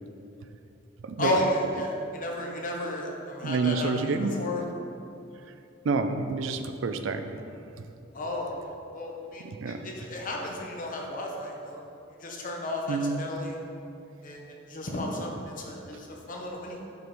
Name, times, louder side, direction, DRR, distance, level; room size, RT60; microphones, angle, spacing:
voice 1, 1.2-4.7 8.1-8.5 8.9-11.8 12.2-13.6 14.2-14.4 14.7-16.8, left 1 dB, 45° left, 0 dB, 0.9 m, -33 dB
voice 2, 3.4-4.3 5.8-7.4 9.4-9.9 12.9-13.2, right 4 dB, 70° right, 8 dB, 0.4 m, -28 dB
7.7 x 5.1 x 3.1 m, 2.7 s
head